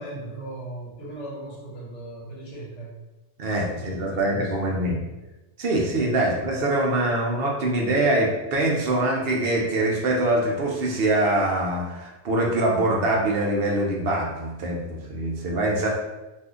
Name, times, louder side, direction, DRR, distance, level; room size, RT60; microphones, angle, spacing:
voice 1, 0.0-2.9 3.7-5.0 6.2-6.4, right 2 dB, 90° left, -5 dB, 1.4 m, -38 dB
voice 2, 3.4-5.0 5.6-15.9, right 1 dB, 65° right, -1 dB, 0.8 m, -24 dB
2.6 x 2.5 x 3.5 m, 1.1 s
omnidirectional pair, 1.2 m